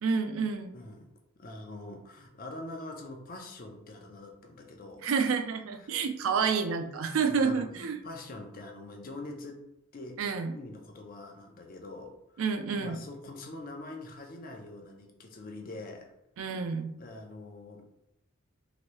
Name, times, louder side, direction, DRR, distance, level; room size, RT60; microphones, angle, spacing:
voice 1, 0.0-0.7 5.0-8.0 10.2-10.6 12.4-13.0 16.4-17.0, right 5 dB, 75° right, 7 dB, 0.4 m, -29 dB
voice 2, 0.7-1.1 1.4-5.1 5.8-5.9 7.4-9.6 9.9-12.4 12.8-16.1 17.0-17.8, left 2 dB, 45° left, 3 dB, 0.5 m, -44 dB
3.0 x 2.6 x 3.0 m, 0.84 s
head